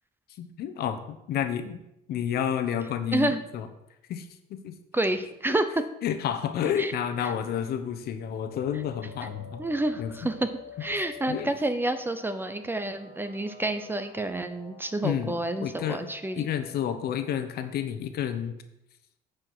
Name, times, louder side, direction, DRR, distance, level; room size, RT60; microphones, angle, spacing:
voice 1, 0.4-1.8 2.1-3.7 4.1-4.7 6.0-9.6 10.0-10.1 11.3-11.5 15.0-16.0 16.4-18.6, left 9 dB, 65° left, 9 dB, 1.0 m, -30 dB
voice 2, 4.9-5.8 6.8-6.9 7.2-7.3 9.6-10.5 10.8-16.5, right 1 dB, 10° right, 10 dB, 0.7 m, -29 dB
sound 1, 8.5-17.8, left 4 dB, 90° left, 1.6 m, -48 dB
8.4 x 5.0 x 6.1 m, 0.86 s
cardioid pair, 110°, 17 cm